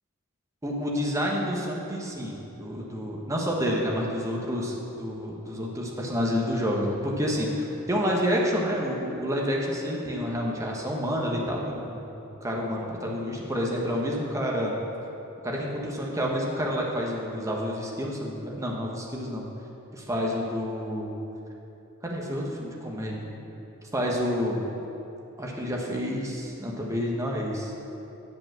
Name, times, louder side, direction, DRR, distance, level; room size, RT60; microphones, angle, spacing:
voice 1, 0.6-12.0 12.4-14.7 15.4-19.4 19.9-21.2 22.0-23.3 23.9-24.6 25.4-27.7, equal, 15° right, -2 dB, 1.1 m, -29 dB
8.1 x 5.3 x 7.6 m, 2.9 s
head